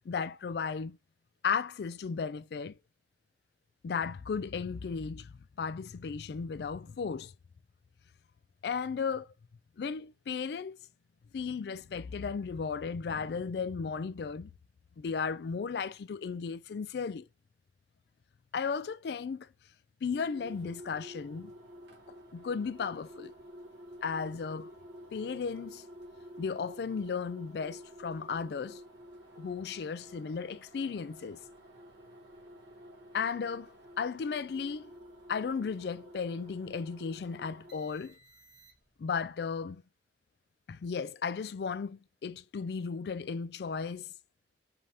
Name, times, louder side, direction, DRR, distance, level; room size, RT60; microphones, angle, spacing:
voice 1, 0.1-1.0 1.4-2.8 3.8-7.3 8.6-9.3 9.8-10.8 11.3-14.5 15.0-17.2 18.5-19.5 20.0-21.5 22.3-23.3 24.0-24.7 25.1-25.9 26.4-28.8 29.4-31.4 33.1-34.9 35.3-38.2 39.0-39.8 40.7-44.1, left 5 dB, 65° left, 0.3 m, -35 dB
sound 1, 20.1-39.1, equal, 80° right, 1.7 m, -51 dB
5.2 x 2.8 x 3.5 m
head